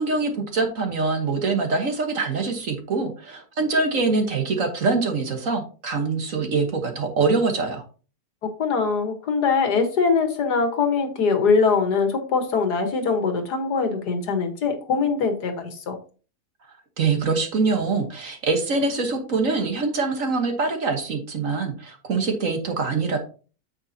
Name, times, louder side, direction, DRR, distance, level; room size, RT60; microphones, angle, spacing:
voice 1, 0.0-7.8 17.0-23.2, right 4 dB, 50° right, 5 dB, 1.6 m, -24 dB
voice 2, 8.6-16.0, left 5 dB, 70° left, 6 dB, 1.9 m, -22 dB
8.7 x 7.0 x 2.8 m, 0.36 s
omnidirectional pair, 1.8 m